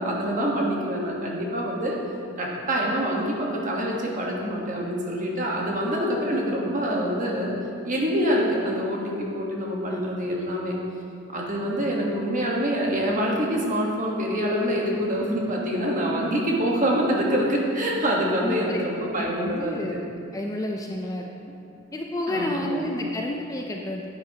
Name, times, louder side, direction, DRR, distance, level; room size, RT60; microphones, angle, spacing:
voice 1, 0.0-2.0 2.4-7.6 7.8-10.7 11.3-20.0 22.3-22.8, equal, 40° right, -2 dB, 1.3 m, -26 dB
voice 2, 18.4-18.8 19.2-20.0 20.3-21.3 21.9-24.1, left 1 dB, 15° left, 1 dB, 0.4 m, -30 dB
10.0 x 8.9 x 2.8 m, 2.5 s
head